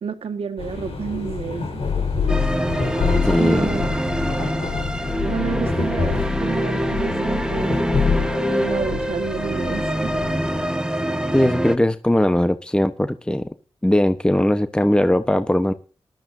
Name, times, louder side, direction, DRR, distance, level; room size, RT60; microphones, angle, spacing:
voice 1, 0.0-1.8 2.9-3.1 3.4-4.0 5.2-7.8 8.6-10.1, right 6 dB, 80° right, 6 dB, 1.7 m, -29 dB
sound 1, 0.6-10.7, left 5 dB, 75° left, 5.2 m, -26 dB
sound 2, 2.3-11.8, right 1 dB, 10° right, 1.7 m, -25 dB
voice 2, 3.2-3.8 11.3-13.5 13.8-15.7, left 1 dB, 10° left, 10 dB, 1.1 m, -19 dB
19.5 x 13.0 x 2.7 m, 0.35 s
cardioid pair, 50°, 10 cm